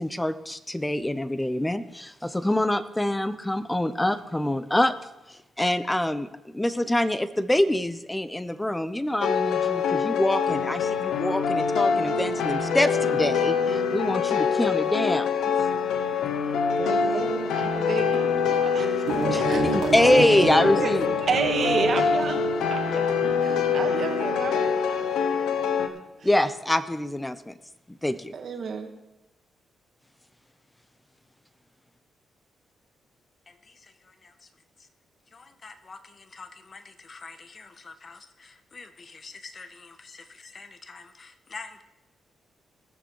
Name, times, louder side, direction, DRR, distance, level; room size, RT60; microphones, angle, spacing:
voice 1, 0.0-4.9 5.3-15.3 19.3-21.1 26.2-27.5 27.9-28.3, left 1 dB, 10° left, 13 dB, 0.9 m, -25 dB
sound 1, 9.2-25.9, left 6 dB, 85° left, 1.1 m, -25 dB
voice 2, 16.8-18.3 18.6-18.9 19.4-19.6 20.8-20.9 21.2-22.5 22.7-24.7 28.3-28.9, right 5 dB, 60° right, 4 dB, 1.9 m, -30 dB
sound 2, 19.1-24.5, right 4 dB, 80° right, 2.4 m, -31 dB
voice 3, 33.5-34.5 34.8-34.9 35.3-41.8, left 4 dB, 40° left, 9 dB, 1.3 m, -46 dB
20.0 x 6.9 x 4.7 m, 0.95 s
cardioid pair, 75°, 0 cm